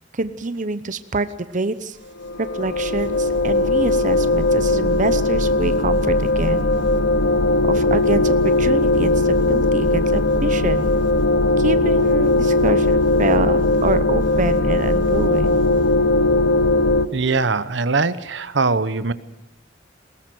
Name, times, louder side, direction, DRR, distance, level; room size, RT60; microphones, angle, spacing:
voice 1, 0.1-1.3 1.5-2.0 2.4-6.7 7.7-10.9 11.6-15.6, right 3 dB, 45° right, 12 dB, 0.9 m, -26 dB
sound 1, 2.2-17.1, left 2 dB, 65° left, 1.2 m, -18 dB
voice 2, 17.1-19.1, right 4 dB, 70° right, 14 dB, 0.9 m, -21 dB
21.0 x 18.0 x 7.8 m, 0.86 s
head